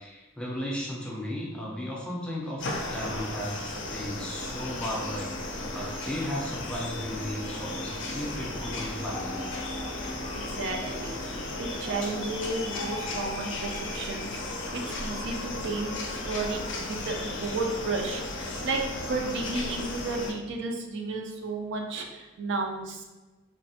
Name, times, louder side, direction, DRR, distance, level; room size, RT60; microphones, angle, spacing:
voice 1, 0.0-5.3 5.6-9.4, equal, 5° left, -4 dB, 0.4 m, -35 dB
sound 1, 2.6-20.3, left 2 dB, 65° left, 0.4 m, -35 dB
voice 2, 10.3-11.2 11.6-23.0, right 3 dB, 65° right, 2 dB, 0.4 m, -33 dB
3.2 x 2.0 x 2.7 m, 1.2 s
head